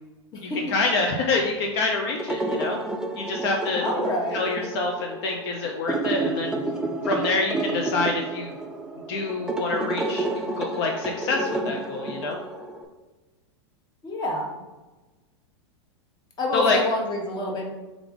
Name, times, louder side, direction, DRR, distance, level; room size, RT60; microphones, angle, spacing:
voice 1, 0.4-2.8 3.1-3.8 4.3-6.6 7.0-8.5 9.1-10.3 10.6-12.4 16.5-16.8, left 3 dB, 60° left, 1 dB, 0.6 m, -26 dB
sound 1, 2.1-12.8, right 2 dB, 5° right, 0.4 m, -30 dB
voice 2, 3.8-4.4 14.0-14.5 16.4-17.7, left 1 dB, 25° left, 0 dB, 1.1 m, -27 dB
3.6 x 3.3 x 3.6 m, 1.2 s
hypercardioid pair, 110°, 15 cm